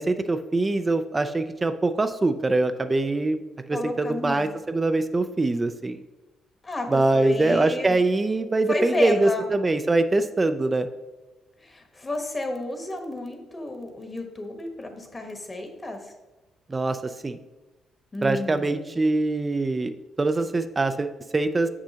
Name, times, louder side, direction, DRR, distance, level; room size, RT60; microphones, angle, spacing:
voice 1, 0.0-3.4 3.7-6.0 6.9-10.9 16.7-17.4 18.2-21.7, right 2 dB, 25° right, 9 dB, 0.4 m, -23 dB
voice 2, 3.7-4.5 6.6-8.0 8.7-9.6 11.6-16.1 18.1-18.9, left 2 dB, 25° left, 4 dB, 1.1 m, -32 dB
7.3 x 6.2 x 2.8 m, 1.1 s
cardioid pair, 90°, 0 cm